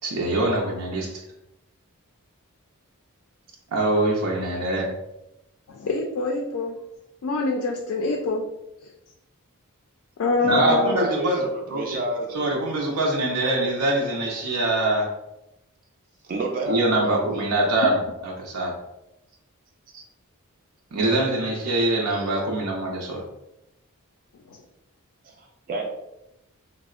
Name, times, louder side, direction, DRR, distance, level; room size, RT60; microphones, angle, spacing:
voice 1, 0.0-1.1 3.7-4.9 10.4-12.0 12.3-15.1 16.7-18.8 20.9-23.2, right 1 dB, 85° right, -2 dB, 0.5 m, -24 dB
voice 2, 5.7-6.8 7.2-8.4 10.2-11.1 24.5-24.6, left 3 dB, 65° left, 0 dB, 0.3 m, -25 dB
voice 3, 10.4-12.7 16.2-17.7 19.9-20.0 25.2-25.9, right 3 dB, 40° right, 2 dB, 0.3 m, -30 dB
3.4 x 2.0 x 2.3 m, 0.89 s
head